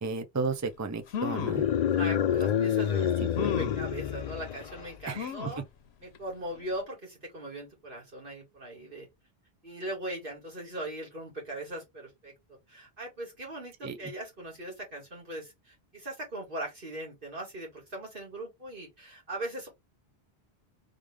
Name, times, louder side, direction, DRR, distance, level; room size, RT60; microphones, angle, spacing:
voice 1, 0.0-1.6 3.2-3.5 5.1-5.5 13.8-14.1, right 4 dB, 20° right, 0.5 m, -34 dB
sound 1, 0.7-0.8 1.1-1.7 2.4-2.5 3.3-3.9 5.2-5.6 6.1-6.2 6.5-6.6, left 7 dB, 85° left, 0.9 m, -34 dB
sound 2, 1.3-5.0, left 9 dB, 50° left, 0.5 m, -28 dB
voice 2, 2.0-5.6 6.0-9.1 9.6-19.7, right 1 dB, 55° right, 2.5 m, -40 dB
3.7 x 3.3 x 3.4 m
omnidirectional pair, 1.1 m